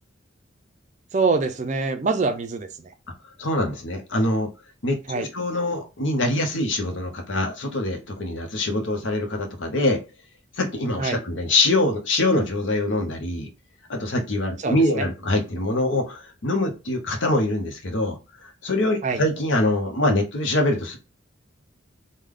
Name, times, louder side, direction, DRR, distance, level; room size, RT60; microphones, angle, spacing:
voice 1, 1.1-2.9 5.1-5.3 11.0-11.2 14.6-15.1 19.0-19.2, right 4 dB, 35° right, 0.4 m, -24 dB
voice 2, 3.4-4.5 4.8-10.0 10.6-13.5 13.9-18.2 18.6-21.0, left 2 dB, 70° left, 0.8 m, -24 dB
3.3 x 2.2 x 3.7 m
head